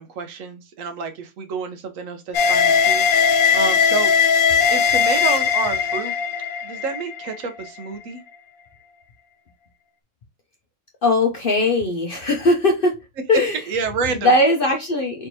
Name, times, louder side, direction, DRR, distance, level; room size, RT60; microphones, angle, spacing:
voice 1, 0.0-4.1 4.7-6.1 6.6-8.2 13.7-14.3, right 5 dB, 70° right, 1.1 m, -29 dB
sound 1, 2.3-7.7, left 6 dB, 85° left, 1.2 m, -19 dB
voice 2, 11.0-12.9 13.3-15.3, left 2 dB, 55° left, 0.6 m, -20 dB
4.4 x 3.4 x 2.6 m
omnidirectional pair, 1.5 m